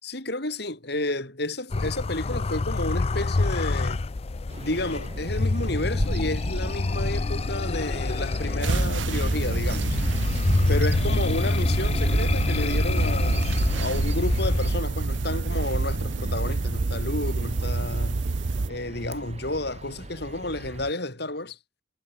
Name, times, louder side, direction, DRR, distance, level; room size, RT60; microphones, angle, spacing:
voice 1, 0.0-4.1 4.6-10.0 10.7-18.2 18.7-21.6, left 2 dB, 60° left, 6.2 m, -31 dB
sound 1, 1.7-14.8, left 3 dB, 35° left, 0.5 m, -27 dB
Bird vocalization bird call bird song, 4.5-20.9, right 1 dB, 35° right, 2.6 m, -37 dB
sound 2, 8.6-18.7, right 3 dB, 80° right, 0.7 m, -27 dB
head